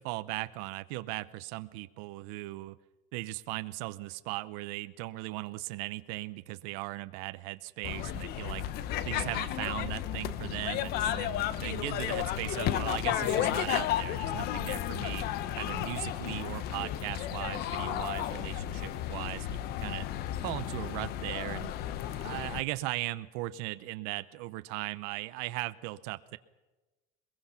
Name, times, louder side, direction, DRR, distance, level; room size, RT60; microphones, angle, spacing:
voice 1, 0.0-2.8 3.1-8.6 9.0-15.3 15.5-20.1 20.4-21.7 22.2-26.4, right 19 dB, 85° right, 12 dB, 0.8 m, -38 dB
sound 1, 7.8-22.6, left 11 dB, 60° left, 1.1 m, -33 dB
23.5 x 22.0 x 5.8 m, 1.1 s
cardioid pair, 135°, 18 cm